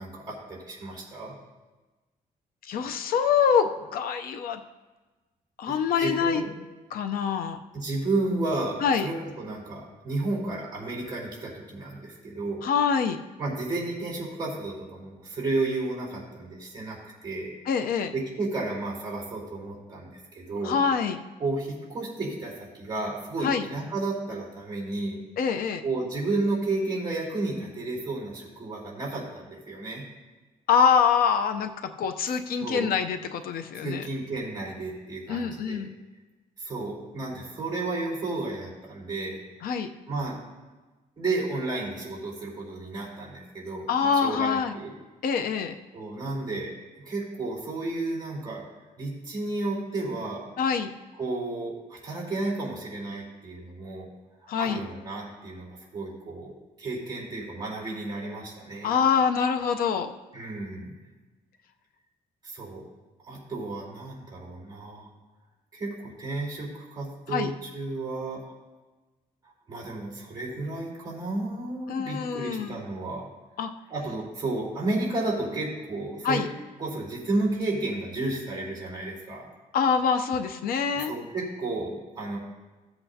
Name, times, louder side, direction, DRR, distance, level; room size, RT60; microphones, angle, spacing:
voice 1, 0.0-1.3 5.7-6.5 7.7-12.6 13.4-17.5 18.1-20.8 21.4-25.2 25.8-30.0 32.5-32.9 33.8-35.8 36.6-39.4 40.1-40.4 41.2-44.9 45.9-46.7 47.0-48.7 49.0-50.5 51.2-54.1 54.6-58.9 60.3-61.0 62.4-62.8 63.2-65.1 65.7-68.4 69.7-73.3 73.9-76.4 76.8-79.5 80.9-82.4, right 2 dB, 25° right, -5 dB, 3.8 m, -32 dB
voice 2, 2.7-4.6 5.6-6.4 6.9-7.6 8.8-9.1 12.6-13.2 17.7-18.1 20.6-21.2 23.4-23.6 25.4-25.8 30.7-31.7 32.0-34.0 35.3-35.9 39.6-39.9 43.9-44.8 45.2-45.8 50.6-50.9 54.5-54.8 58.8-60.1 67.3-67.5 71.9-72.8 73.6-73.7 76.2-76.5 79.7-81.1, left 6 dB, 75° left, 7 dB, 0.6 m, -25 dB
16.0 x 7.9 x 2.8 m, 1.2 s
cardioid pair, 170°, 15 cm